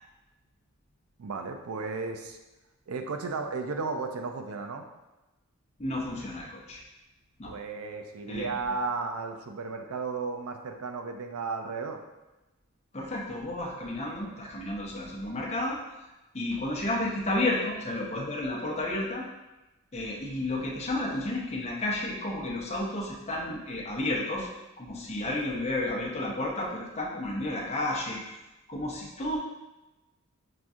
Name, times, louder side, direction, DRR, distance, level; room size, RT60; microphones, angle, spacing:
voice 1, 1.2-2.4 2.9-4.8 7.5-12.0, right 4 dB, 90° right, 5 dB, 0.5 m, -34 dB
voice 2, 5.8-6.8 7.4-7.5 8.3-8.5 12.9-15.8 16.3-19.2 19.9-24.5 24.8-28.2 28.7-29.4, left 1 dB, 30° left, -3 dB, 0.7 m, -31 dB
5.9 x 2.6 x 2.3 m, 1.0 s
head